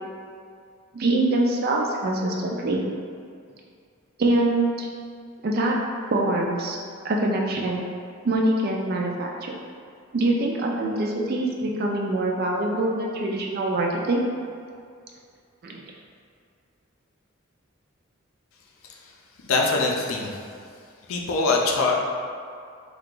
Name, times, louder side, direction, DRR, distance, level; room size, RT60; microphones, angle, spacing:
voice 1, 0.9-2.8 4.2-4.9 5.4-5.8 6.1-6.8 7.0-7.8 8.2-9.5 10.1-14.2 15.6-15.8, right 2 dB, 50° right, -1 dB, 0.4 m, -24 dB
voice 2, 19.5-20.4 21.1-22.0, left 3 dB, 85° left, 0 dB, 0.4 m, -23 dB
2.8 x 2.3 x 3.7 m, 2.3 s
head